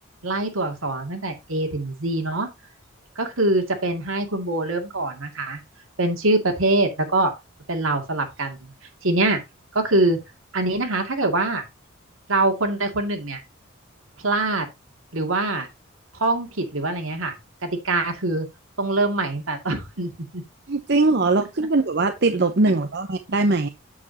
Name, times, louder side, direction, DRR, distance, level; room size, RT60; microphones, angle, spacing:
voice 1, 0.2-2.5 3.2-5.6 6.0-7.3 7.7-8.7 9.0-9.4 9.7-10.2 10.5-11.6 12.3-13.4 14.2-14.7 15.1-15.7 16.2-17.4 17.6-18.5 18.8-20.4, right 2 dB, 85° right, 2.3 m, -24 dB
voice 2, 20.7-23.7, right 3 dB, 55° right, 0.8 m, -21 dB
8.6 x 7.2 x 2.8 m
head